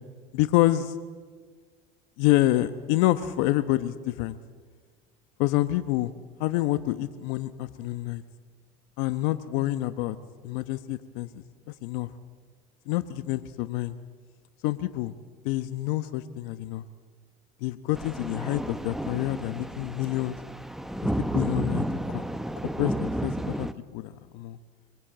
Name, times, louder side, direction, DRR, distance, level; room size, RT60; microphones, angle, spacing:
voice 1, 0.3-1.0 2.2-4.4 5.4-6.1 6.4-8.2 9.0-10.2 10.4-11.4 11.8-12.1 12.9-14.0 14.6-15.1 15.4-16.8 17.6-20.4 21.2-22.2 22.8-23.7 23.9-24.6, left 16 dB, 75° left, 12 dB, 1.0 m, -27 dB
sound 1, 18.0-23.7, right 1 dB, ahead, 1.0 m, -31 dB
24.0 x 21.5 x 9.0 m, 1.6 s
supercardioid pair, 105°, 19 cm